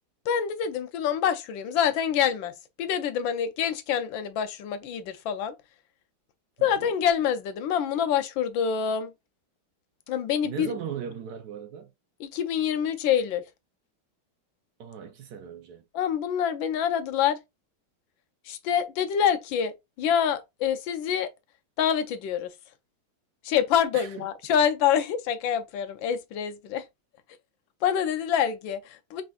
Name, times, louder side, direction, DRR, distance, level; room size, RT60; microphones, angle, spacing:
voice 1, 0.3-2.5 2.8-5.5 6.6-9.1 10.1-10.8 12.2-13.4 15.9-17.4 18.5-21.3 21.8-22.5 23.4-26.8 27.8-29.2, left 8 dB, 75° left, 1.3 m, -26 dB
voice 2, 10.4-11.9 14.8-15.8 23.9-24.1, right 7 dB, 70° right, 0.9 m, -38 dB
4.8 x 3.6 x 2.3 m
omnidirectional pair, 2.2 m